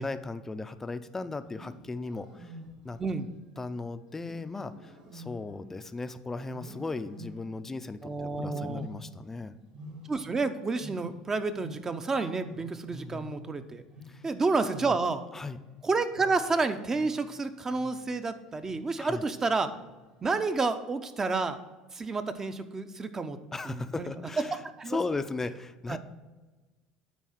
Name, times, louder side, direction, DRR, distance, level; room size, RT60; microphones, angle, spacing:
voice 1, 0.0-2.5 2.8-3.0 3.6-9.5 12.9-13.3 14.1-14.2 14.8-15.0 15.3-15.6 19.0-19.2 23.5-24.6 24.9-26.0, left 3 dB, 15° left, 11 dB, 0.5 m, -37 dB
Wild animals, 1.4-3.1 4.2-6.0 6.5-7.7 8.3-9.3 9.6-12.1 12.4-17.3 17.6-18.1 18.5-19.0 19.7-20.1, left 1 dB, 70° right, 2.6 m, -48 dB
voice 2, 8.0-8.9 10.1-13.8 14.2-15.2 15.8-19.7 20.2-21.6 21.9-23.4 23.6-24.1 24.8-25.0 25.9-26.0, right 3 dB, 25° right, 10 dB, 0.7 m, -30 dB
9.3 x 4.1 x 6.4 m, 1.2 s
supercardioid pair, 100°, 2 cm